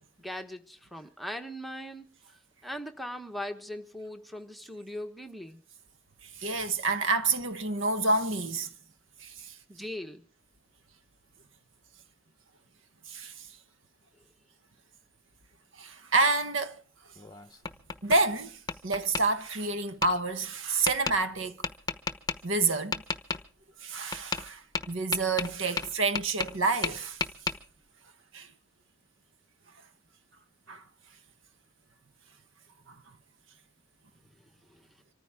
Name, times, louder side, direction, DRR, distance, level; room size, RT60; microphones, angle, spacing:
voice 1, 0.2-2.1 2.6-5.6 9.7-10.2 34.7-34.9, equal, ahead, 1.2 m, -39 dB
voice 2, 6.4-8.7 9.2-9.5 13.1-13.5 15.8-16.8 18.0-21.6 22.4-23.0 23.8-24.6 24.9-27.2 28.3-28.5 30.7-30.8 32.9-33.0, right 3 dB, 65° right, 1.2 m, -28 dB
Tap, 17.2-18.2 18.7-19.2 20.0-20.1 20.9-21.2 21.6-22.4 22.9-23.4 24.1-24.5 24.7-26.6 26.8-27.6, left 5 dB, 20° left, 0.9 m, -32 dB
25.5 x 14.5 x 3.6 m
head